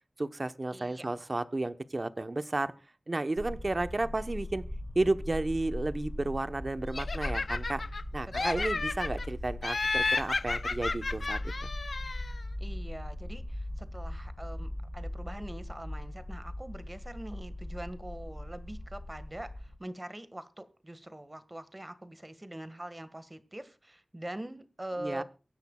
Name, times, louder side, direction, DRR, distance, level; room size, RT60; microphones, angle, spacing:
voice 1, 0.2-2.7 3.1-4.6 4.9-7.8 8.1-11.7 25.0-25.2, right 2 dB, 40° right, 11 dB, 1.0 m, -32 dB
voice 2, 0.7-1.1 8.4-8.7 12.6-25.2, right 1 dB, 25° right, 12 dB, 1.6 m, -43 dB
sound 1, 3.4-19.8, left 1 dB, 15° left, 2.3 m, -39 dB
Laughter, 6.9-8.0 8.3-9.3 9.6-12.4, left 3 dB, 65° left, 0.6 m, -32 dB
23.5 x 10.5 x 2.3 m, 0.34 s
wide cardioid pair, 80°, 0 cm